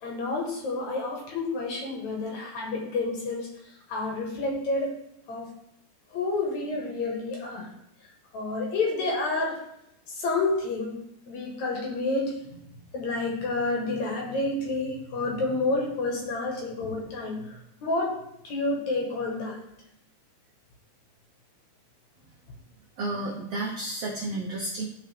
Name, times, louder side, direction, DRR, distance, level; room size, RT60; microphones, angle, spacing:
voice 1, 0.0-3.5 3.9-4.9 5.3-5.5 6.1-7.7 8.3-9.6 10.2-11.0 11.3-12.3 12.9-17.4 17.8-18.1 18.4-19.6, left 3 dB, 60° left, -1 dB, 2.3 m, -29 dB
voice 2, 23.0-24.8, right 2 dB, 85° right, -2 dB, 1.4 m, -31 dB
12.5 x 4.5 x 3.4 m, 0.78 s
omnidirectional pair, 4.3 m